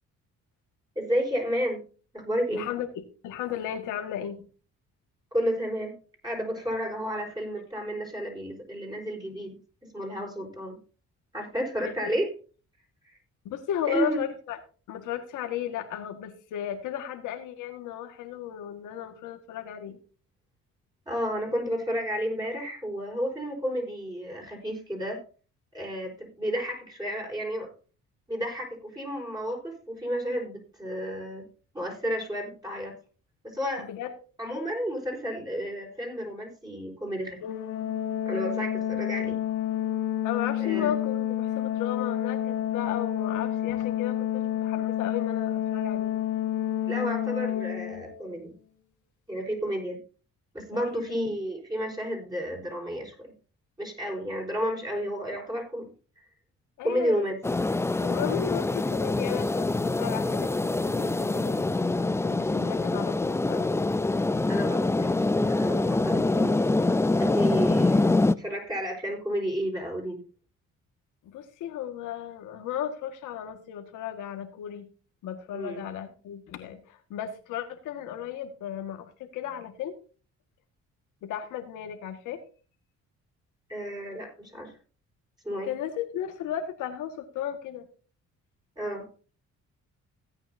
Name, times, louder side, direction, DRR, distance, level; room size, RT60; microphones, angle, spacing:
voice 1, 0.9-1.8 2.1-2.7 5.3-5.9 6.2-9.6 9.9-10.8 11.3-12.3 13.0-13.1 13.9-14.2 21.1-25.2 25.7-27.7 28.3-31.4 31.7-32.9 33.4-33.9 34.4-37.5 38.2-39.4 40.6-40.9 46.9-48.5 49.3-50.0 50.5-53.3 53.8-55.9 56.2-56.3 56.8-57.4 64.5-66.6 67.2-70.2 75.5-75.8 83.7-84.7 85.4-85.7 88.8-89.1, equal, 15° right, -1 dB, 4.5 m, -31 dB
voice 2, 2.5-4.5 11.8-12.1 13.5-14.6 14.9-20.0 33.8-34.1 40.2-46.2 50.7-51.2 56.8-57.2 57.9-60.5 60.8-63.8 71.2-74.9 75.2-80.0 81.2-82.4 85.6-87.9, left 10 dB, 90° left, 6 dB, 1.8 m, -35 dB
Organ, 37.4-48.3, left 11 dB, 75° left, 1.1 m, -29 dB
sound 1, 57.4-68.3, left 2 dB, 10° left, 0.4 m, -25 dB
16.5 x 8.9 x 2.7 m, 0.37 s
cardioid pair, 90°, 30 cm